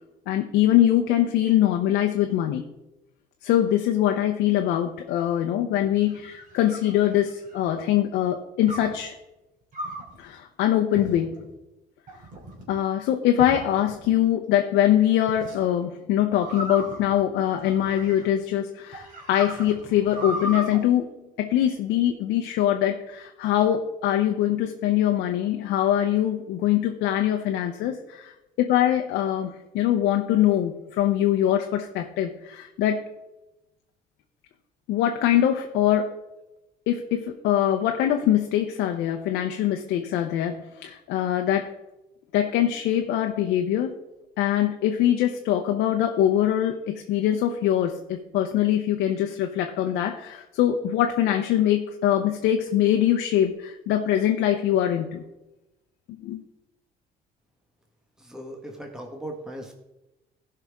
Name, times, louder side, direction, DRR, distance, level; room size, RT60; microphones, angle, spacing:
voice 1, 0.3-2.7 3.4-9.2 10.2-11.3 12.7-21.1 21.4-33.0 34.9-36.1 36.9-41.7 42.3-43.9 44.4-55.2 56.1-56.4, left 11 dB, 85° left, 4 dB, 0.8 m, -23 dB
sound 1, 5.8-7.7 8.7-9.0 9.7-10.2 10.9-11.5 12.1-12.7 13.4-14.2 15.3-15.6 16.4-18.4 18.9-20.8, equal, 50° right, 3.1 m, -36 dB
voice 2, 58.2-59.7, right 1 dB, 5° right, 2 dB, 1.5 m, -38 dB
16.0 x 5.7 x 3.6 m, 0.97 s
cardioid pair, 110°, 17 cm